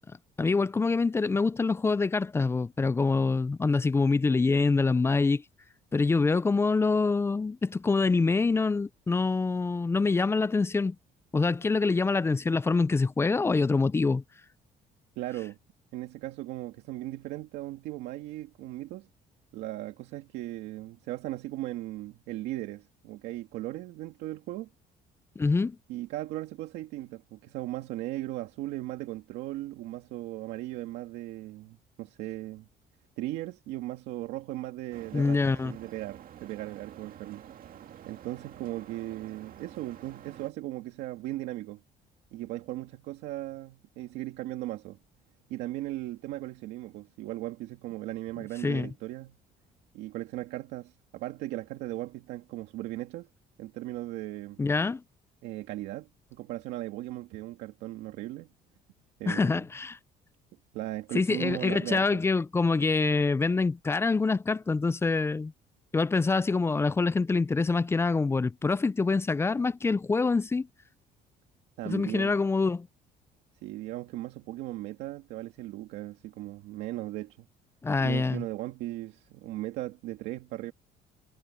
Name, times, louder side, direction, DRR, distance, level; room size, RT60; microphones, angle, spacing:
voice 1, 0.4-5.4 5.9-11.0 11.3-14.2 25.4-25.8 35.1-35.7 48.6-48.9 54.6-55.0 59.3-60.0 61.1-65.5 65.9-70.7 71.9-72.9 77.8-78.4, left 4 dB, 15° left, 0.4 m, -25 dB
voice 2, 15.2-15.6 15.9-19.1 19.5-24.7 25.9-32.7 33.2-37.4 38.0-41.8 42.3-45.0 45.5-49.4 49.9-53.3 53.6-54.6 55.4-58.5 59.2-59.6 60.7-62.2 71.8-72.4 73.6-77.5 78.0-80.7, right 16 dB, 90° right, 2.2 m, -37 dB
sound 1, 34.9-40.5, right 10 dB, 55° right, 2.3 m, -49 dB
cardioid pair, 110°, 17 cm